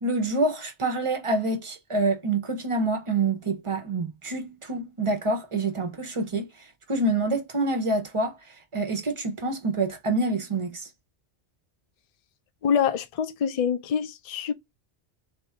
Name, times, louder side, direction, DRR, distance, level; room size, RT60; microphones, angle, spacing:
voice 1, 0.0-6.5 6.9-10.9, right 2 dB, 35° right, 0.6 m, -27 dB
voice 2, 12.6-14.5, left 7 dB, 60° left, 0.3 m, -25 dB
3.6 x 2.4 x 4.1 m
omnidirectional pair, 1.1 m